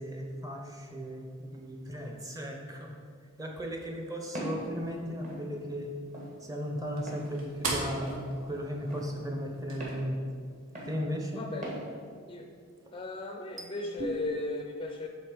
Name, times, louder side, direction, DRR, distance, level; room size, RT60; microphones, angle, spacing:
voice 1, 0.0-2.9 3.4-5.9 6.4-10.2 10.8-11.4 13.6-13.7 14.0-14.1, equal, 15° right, 1 dB, 0.7 m, -36 dB
Walk footsteps, 4.3-4.6 5.2-5.4 6.1-6.3 7.1-7.2 8.0-8.2 8.9-9.1 9.8-10.0 10.7-10.9 11.6-11.8, equal, 40° right, 1.5 m, -39 dB
sound 1, 4.6-9.9, right 2 dB, 70° right, 1.4 m, -41 dB
voice 2, 11.4-11.7 12.3-12.5 12.9-15.1, left 2 dB, 25° left, 3 dB, 0.4 m, -36 dB
7.7 x 3.7 x 5.1 m, 2.1 s
head